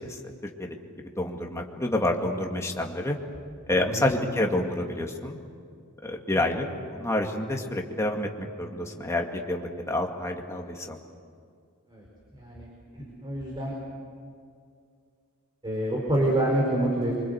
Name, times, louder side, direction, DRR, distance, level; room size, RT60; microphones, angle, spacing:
voice 1, 0.0-0.8 1.2-3.2 3.7-5.4 6.0-6.6 6.9-11.0, left 1 dB, 15° left, 1 dB, 2.2 m, -28 dB
voice 2, 12.3-12.7 13.0-13.7 15.6-17.1, right 1 dB, 20° right, -2 dB, 4.6 m, -27 dB
26.5 x 24.5 x 8.1 m, 2.3 s
head